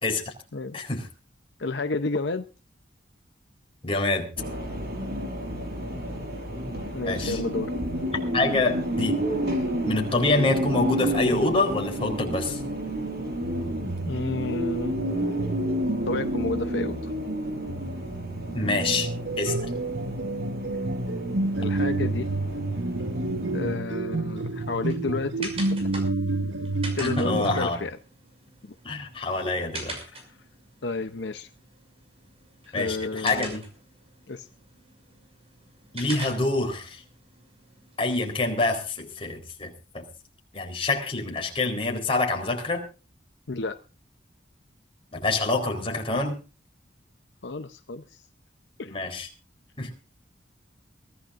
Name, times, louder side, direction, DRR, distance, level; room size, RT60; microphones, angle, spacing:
voice 1, 0.0-0.3 0.7-1.1 3.8-4.3 7.0-7.4 8.3-9.2 9.8-12.6 18.5-19.1 19.4-19.7 27.0-27.8 28.8-29.9 32.7-33.6 35.9-37.0 38.0-40.0 40.5-42.8 45.2-46.4 48.9-49.3 49.8-49.9, left 2 dB, 30° left, 2 dB, 4.1 m, -26 dB
voice 2, 1.6-2.5 6.9-7.7 14.1-14.9 16.1-17.1 21.6-22.3 23.5-25.9 27.0-28.0 28.6-28.7 30.1-30.2 30.8-31.5 32.7-33.6 34.3-34.5 43.5-43.8 47.4-48.2 48.8-49.0, left 3 dB, 70° left, 9 dB, 0.8 m, -31 dB
sound 1, 4.4-23.8, equal, 60° right, 5.8 m, -31 dB
sound 2, 13.4-27.7, right 2 dB, 85° right, 1.2 m, -30 dB
sound 3, 24.3-38.9, right 1 dB, 35° right, 5.8 m, -43 dB
23.0 x 16.0 x 2.6 m, 0.32 s
head